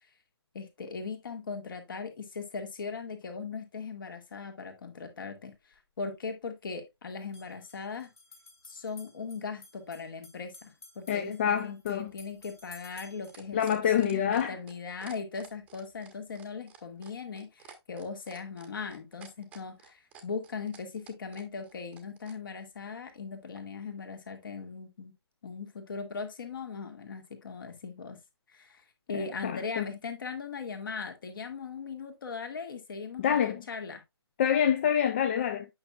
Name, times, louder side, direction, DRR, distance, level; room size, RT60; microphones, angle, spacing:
voice 1, 0.5-8.1 8.6-13.6 14.0-25.1 25.4-28.2 28.5-28.8 29.1-34.0, left 5 dB, 50° left, 2.0 m, -39 dB
sound 1, 5.5-5.6 7.2-13.4, left 3 dB, 70° left, 2.7 m, -55 dB
voice 2, 11.1-12.1 13.5-14.5 29.1-29.9 33.2-33.6 34.4-35.7, left 9 dB, 25° left, 0.5 m, -27 dB
sound 2, 11.8-22.4 23.6-23.7, right 7 dB, 10° right, 0.9 m, -53 dB
8.7 x 5.9 x 2.3 m
figure-of-eight pair, 140°, 14 cm